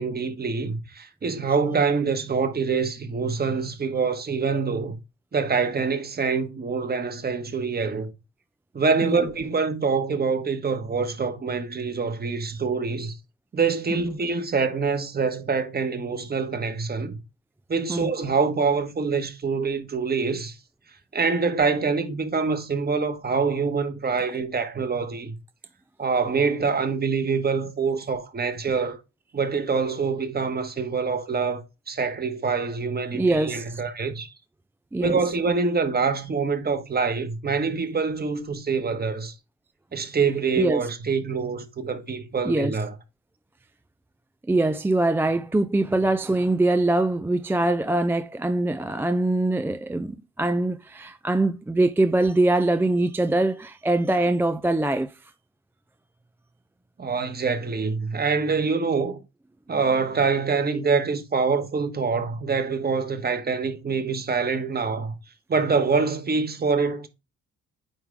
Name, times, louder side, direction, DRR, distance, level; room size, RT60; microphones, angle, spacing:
voice 1, 0.0-5.0 5.3-8.1 8.7-13.1 13.5-17.2 17.7-20.5 21.1-25.4 26.0-29.0 29.3-34.3 35.0-39.3 39.9-42.9 57.0-59.2 59.7-65.2 65.5-67.1, right 5 dB, 30° right, 1.4 m, -25 dB
voice 2, 33.1-33.6 34.9-35.2 40.6-40.9 42.5-42.8 44.5-55.2, right 2 dB, 10° right, 0.4 m, -23 dB
9.2 x 3.6 x 3.5 m
cardioid pair, 90°, 30 cm